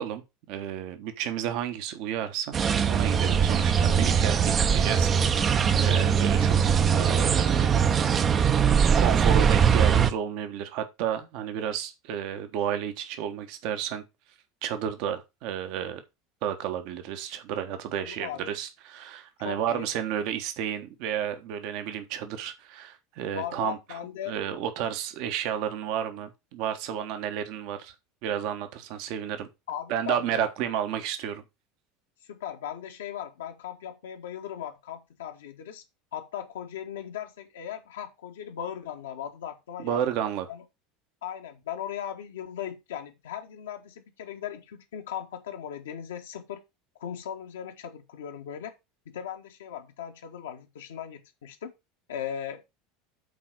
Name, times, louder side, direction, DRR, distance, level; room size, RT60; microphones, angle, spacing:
voice 1, 0.0-2.5 2.9-7.8 9.0-14.0 14.6-16.0 16.4-24.0 24.3-27.9 28.2-29.5 29.9-31.4 39.8-40.5, right 9 dB, 50° right, 1.3 m, -32 dB
sound 1, 2.5-10.1, right 7 dB, 30° right, 0.9 m, -21 dB
voice 2, 18.0-18.6 19.4-19.9 23.3-24.3 29.7-30.5 32.3-35.8 36.1-40.1 40.5-40.6 41.2-46.6 47.0-48.7 49.0-51.7 52.1-52.6, left 9 dB, 65° left, 1.5 m, -38 dB
8.6 x 4.2 x 6.2 m
figure-of-eight pair, 75°, 0 cm